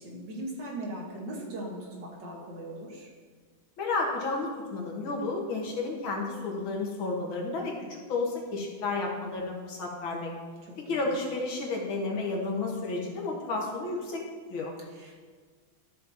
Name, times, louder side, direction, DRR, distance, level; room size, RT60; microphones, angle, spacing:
voice 1, 0.0-3.1 5.6-5.7 10.6-11.0 14.9-15.2, right 1 dB, 60° right, -2 dB, 2.0 m, -39 dB
voice 2, 3.8-10.3 10.9-14.2 14.5-14.7, left 3 dB, 80° left, -1 dB, 2.2 m, -32 dB
13.0 x 6.7 x 2.9 m, 1.6 s
omnidirectional pair, 2.2 m